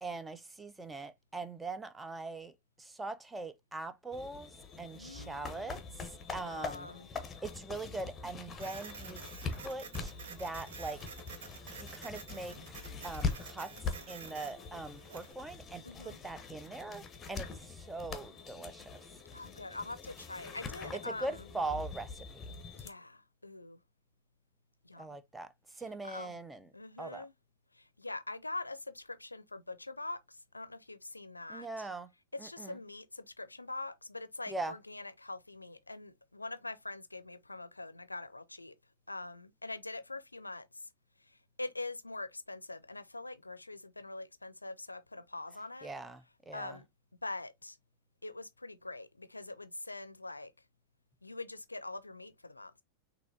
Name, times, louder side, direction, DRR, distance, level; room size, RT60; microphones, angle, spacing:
voice 1, 0.0-4.5 4.8-6.9 7.4-11.0 11.8-12.6 13.0-13.7 14.1-19.0 20.9-22.5 25.0-25.5 25.7-26.7 27.0-27.3 31.5-32.1 32.4-32.8 34.5-34.7 45.8-46.8, right 3 dB, 10° right, 0.6 m, -42 dB
sound 1, 4.1-22.9, left 4 dB, 20° left, 0.9 m, -43 dB
voice 2, 4.9-5.8 6.4-7.1 15.8-16.2 19.3-21.5 22.7-23.8 24.8-25.2 26.0-26.4 26.7-27.3 27.7-31.9 32.4-38.7 39.1-40.9 41.3-45.9 46.5-46.9 47.2-47.8 48.2-50.5 51.2-52.8, left 2 dB, 85° left, 0.5 m, -44 dB
Printer, 8.6-15.3, right 6 dB, 60° right, 0.9 m, -49 dB
6.3 x 2.8 x 2.6 m
figure-of-eight pair, 90°, 0 cm